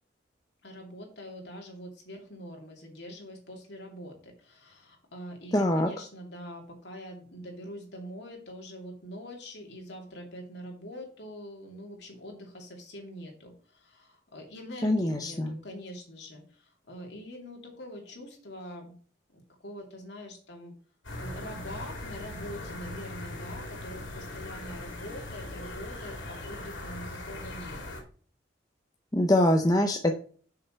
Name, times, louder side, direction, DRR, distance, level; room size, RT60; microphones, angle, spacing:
voice 1, 0.6-19.0 19.3-20.7 21.2-27.8, equal, 60° left, 1 dB, 2.7 m, -44 dB
voice 2, 5.5-5.9 14.8-15.6 29.1-30.2, left 1 dB, 20° left, 4 dB, 0.6 m, -24 dB
sound 1, 21.0-28.0, left 2 dB, 90° left, 2.6 m, -40 dB
7.0 x 6.5 x 4.5 m, 0.43 s
head